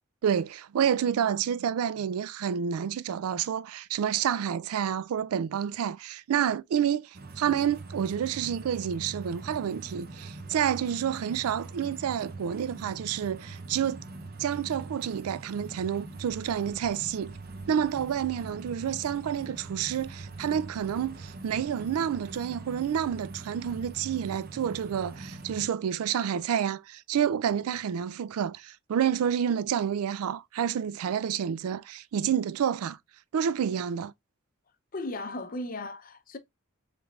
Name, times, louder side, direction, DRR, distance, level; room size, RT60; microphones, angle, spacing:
voice 1, 0.2-14.0 14.4-17.3 17.7-33.0 33.3-34.1, right 8 dB, 90° right, 0.3 m, -29 dB
sound 1, 7.1-25.7, right 3 dB, 45° right, 0.6 m, -43 dB
sound 2, 16.2-23.9, equal, 25° right, 0.9 m, -58 dB
voice 2, 34.9-36.4, left 2 dB, 40° left, 0.5 m, -36 dB
5.2 x 3.3 x 2.3 m
head